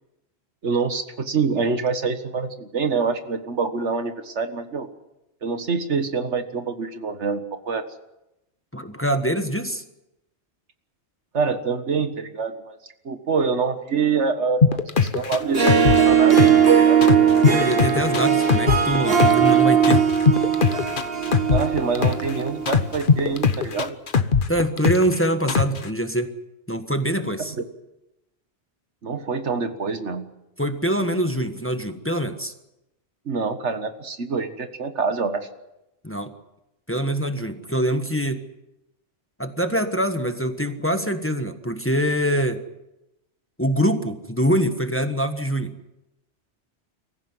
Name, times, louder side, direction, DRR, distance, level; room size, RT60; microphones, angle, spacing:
voice 1, 0.6-4.9 5.4-7.9 11.3-12.8 13.1-17.0 21.5-24.0 29.0-30.2 33.3-35.5, right 5 dB, 80° right, 9 dB, 1.8 m, -26 dB
voice 2, 8.7-9.8 17.5-20.1 24.5-26.3 26.7-27.5 30.6-32.5 36.0-36.3 36.9-38.5 39.4-42.6 43.6-45.8, equal, 10° left, 8 dB, 1.3 m, -24 dB
sound 1, 14.6-16.7 17.0-19.5 19.8-22.3 22.7-25.2 25.5-25.9, left 5 dB, 50° left, 1.2 m, -20 dB
Harp, 15.4-22.8, right 7 dB, 55° right, 2.0 m, -19 dB
24.0 x 15.0 x 9.7 m, 0.91 s
omnidirectional pair, 1.2 m